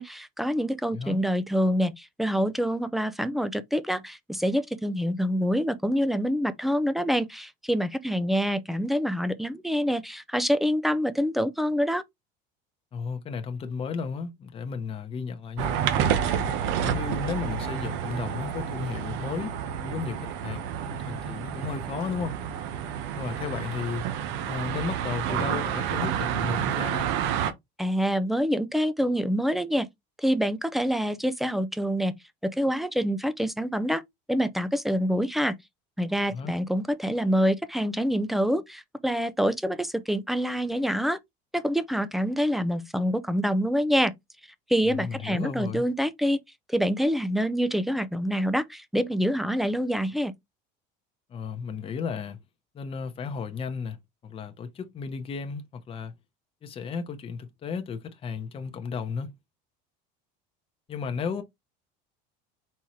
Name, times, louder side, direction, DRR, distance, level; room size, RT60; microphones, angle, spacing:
voice 1, 0.0-12.0 27.8-29.9 30.2-32.2 32.4-34.0 34.3-35.5 36.0-41.2 41.5-44.1 44.7-46.4 46.7-50.3, equal, ahead, 0.4 m, -26 dB
voice 2, 12.9-15.7 16.3-16.5 16.8-19.5 19.8-22.4 23.1-24.1 24.4-27.1 36.3-36.5 44.9-45.9 51.3-52.4 52.7-54.0 54.2-56.1 56.6-59.3 60.9-61.4, left 5 dB, 25° left, 0.8 m, -34 dB
sound 1, 15.6-27.5, right 9 dB, 70° right, 0.8 m, -29 dB
4.3 x 3.5 x 3.1 m
cardioid pair, 130°, 21 cm